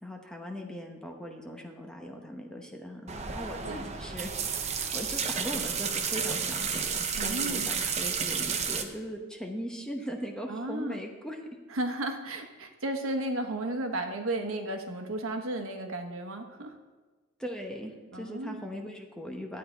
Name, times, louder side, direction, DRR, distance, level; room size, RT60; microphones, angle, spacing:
voice 1, 0.0-4.3 4.6-6.9 7.2-11.4 17.4-19.6, equal, 5° left, 1 dB, 0.9 m, -39 dB
sound 1, 3.1-8.8, right 6 dB, 30° right, 0.7 m, -31 dB
voice 2, 7.1-7.7 10.5-11.0 11.7-16.8 18.1-18.6, right 1 dB, 80° right, 5 dB, 1.1 m, -34 dB
12.0 x 8.6 x 4.5 m, 1.3 s
head